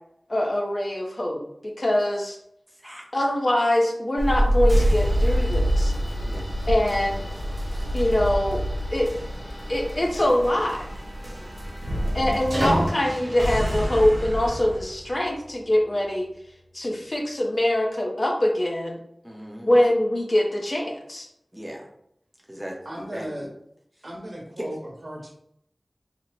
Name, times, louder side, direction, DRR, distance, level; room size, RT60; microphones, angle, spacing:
voice 1, 0.3-2.4 3.1-5.9 6.7-7.2 7.9-8.6 8.9-9.2 9.7-10.9 12.1-16.3 16.7-19.0 19.6-21.3, left 1 dB, 50° left, 1 dB, 0.7 m, -23 dB
sound 1, 4.2-12.9, equal, 90° right, 0.9 m, -25 dB
sound 2, 4.7-16.6, equal, 25° right, 1.0 m, -35 dB
sound 3, 5.0-10.0, left 1 dB, 85° left, 0.7 m, -44 dB
voice 2, 6.2-6.6 12.0-12.2 19.2-19.8 21.5-21.9 22.5-23.5 24.6-24.7, equal, 5° right, 0 dB, 0.7 m, -38 dB
voice 3, 22.8-23.5 24.0-25.3, right 1 dB, 65° right, -1 dB, 0.9 m, -36 dB
3.0 x 2.1 x 3.9 m, 0.74 s
wide cardioid pair, 65°, 0 cm